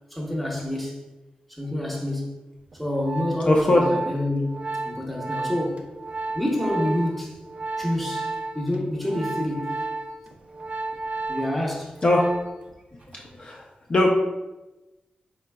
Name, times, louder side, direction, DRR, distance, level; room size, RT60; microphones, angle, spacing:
voice 1, 0.1-1.0 1.5-2.4 2.7-4.5 4.8-5.9 6.3-7.4 7.8-9.9 11.3-12.0, left 1 dB, ahead, -2 dB, 0.6 m, -27 dB
Organ, 2.7-12.7 13.0-13.3, right 3 dB, 40° right, 0.4 m, -33 dB
voice 2, 3.5-3.8 12.0-12.3 13.1-13.6 13.9-14.1, left 1 dB, 35° left, -1 dB, 0.3 m, -20 dB
3.8 x 3.3 x 2.2 m, 1.0 s
wide cardioid pair, 145°, 3 cm